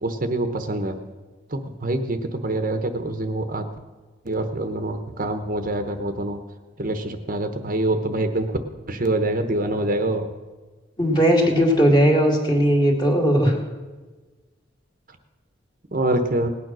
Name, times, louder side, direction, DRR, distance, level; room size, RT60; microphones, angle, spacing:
voice 1, 0.0-1.0 1.5-3.6 4.2-6.4 6.8-8.6 8.9-10.3 15.9-16.5, right 1 dB, 45° right, 7 dB, 1.0 m, -25 dB
voice 2, 11.0-13.6, equal, 25° left, 1 dB, 2.4 m, -18 dB
18.0 x 9.2 x 6.2 m, 1.3 s
head